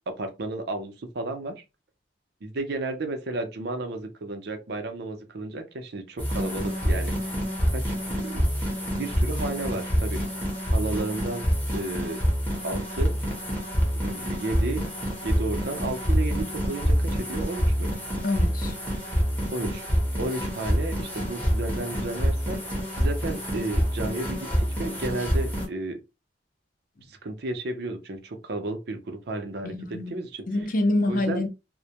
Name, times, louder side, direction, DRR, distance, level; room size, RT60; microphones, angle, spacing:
voice 1, 0.2-1.5 2.4-7.3 7.7-8.4 8.9-10.2 10.7-11.5 11.7-12.2 12.6-13.2 14.0-14.9 15.2-17.9 19.5-19.8 20.2-26.0 27.1-30.4 31.1-31.4, right 2 dB, 65° right, 0.6 m, -33 dB
sound 1, 6.2-25.7, equal, 10° left, 0.8 m, -27 dB
voice 2, 18.2-18.7 29.6-30.2 30.5-31.5, left 2 dB, 50° left, 0.5 m, -26 dB
2.1 x 2.1 x 2.8 m
head